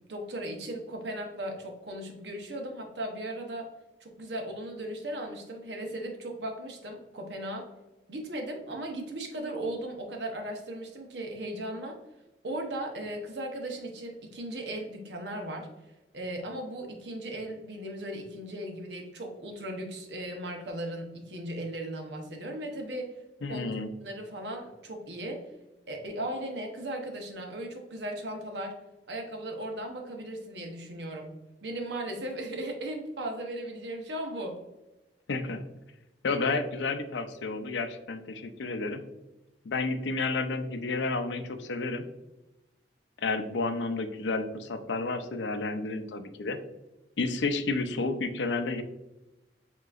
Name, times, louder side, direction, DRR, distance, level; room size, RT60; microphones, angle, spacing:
voice 1, 0.1-3.7 4.0-7.7 8.1-12.0 12.4-15.7 16.1-23.1 23.5-23.6 24.0-25.4 25.9-28.7 29.1-31.3 31.6-34.6, right 1 dB, 70° right, 2 dB, 1.0 m, -37 dB
voice 2, 23.4-23.9 35.3-35.6 36.2-39.0 39.6-42.0 43.2-46.6 47.2-48.8, left 3 dB, 85° left, 9 dB, 0.5 m, -31 dB
7.5 x 2.9 x 2.4 m, 0.99 s
head